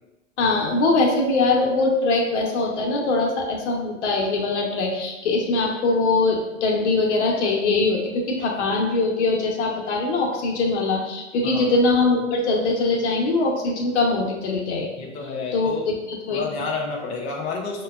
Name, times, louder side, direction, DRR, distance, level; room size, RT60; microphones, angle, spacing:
voice 1, 0.4-15.0 15.5-16.7, left 3 dB, 65° left, 0 dB, 1.0 m, -22 dB
voice 2, 15.0-15.9 16.3-17.8, left 4 dB, 20° left, -1 dB, 0.4 m, -30 dB
5.4 x 2.2 x 2.3 m, 1.0 s
hypercardioid pair, 115°, 37 cm